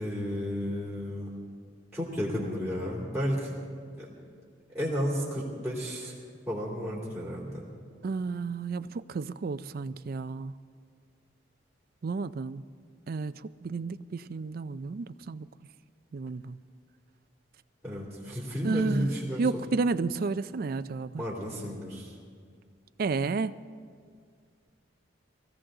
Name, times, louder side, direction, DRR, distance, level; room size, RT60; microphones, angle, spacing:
voice 1, 0.0-1.3 1.9-3.5 4.0-4.1 4.7-6.1 6.5-7.6 17.8-19.6 21.2-22.2, equal, ahead, -7 dB, 2.8 m, -32 dB
voice 2, 8.0-10.5 12.0-12.6 13.1-13.3 13.6-15.5 16.1-16.6 18.6-19.1 19.4-21.2 23.0-23.5, right 4 dB, 50° right, 13 dB, 0.4 m, -31 dB
22.5 x 16.5 x 3.8 m, 2.1 s
head